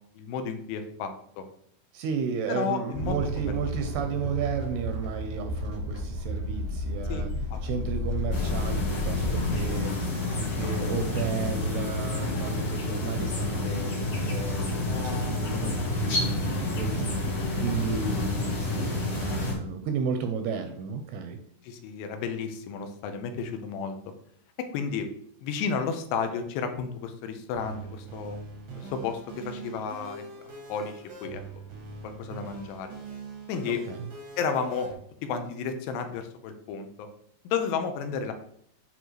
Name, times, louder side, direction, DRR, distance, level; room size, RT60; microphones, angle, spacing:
voice 1, 0.2-1.5 2.5-3.5 7.1-7.6 10.6-10.9 13.6-13.8 21.6-24.0 24.6-25.1 25.4-28.4 28.8-30.2 30.7-31.4 32.0-32.9 33.5-33.8 34.4-34.9 35.2-37.1 37.4-38.3, left 6 dB, 85° left, 7 dB, 2.7 m, -32 dB
voice 2, 1.9-7.3 7.6-17.2 17.6-21.4 33.7-34.1, right 6 dB, 80° right, 6 dB, 2.4 m, -33 dB
sound 1, 2.9-9.7, left 1 dB, 25° left, 1.3 m, -32 dB
sound 2, 8.3-19.5, left 2 dB, 60° left, 1.4 m, -29 dB
sound 3, 27.5-34.9, right 3 dB, 65° right, 1.2 m, -43 dB
9.3 x 3.8 x 3.1 m, 0.66 s
omnidirectional pair, 4.9 m